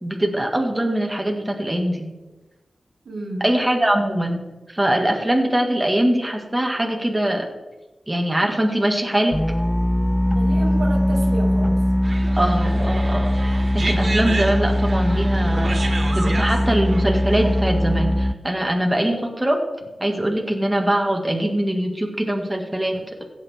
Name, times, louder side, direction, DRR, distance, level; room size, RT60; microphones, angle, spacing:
voice 1, 0.0-2.1 3.4-4.4 4.7-7.5 8.1-9.4 12.3-13.3 13.7-15.8 16.1-19.6 20.0-23.2, right 1 dB, 15° right, 1 dB, 1.8 m, -22 dB
voice 2, 3.0-3.5 10.3-11.8 22.9-23.1, right 2 dB, 85° right, 1 dB, 1.7 m, -31 dB
sound 1, 9.3-18.3, equal, 5° left, 0.3 m, -20 dB
sound 2, 12.0-17.9, right 2 dB, 45° right, 1.3 m, -31 dB
16.0 x 8.4 x 3.6 m, 1.1 s
wide cardioid pair, 85°, 0 cm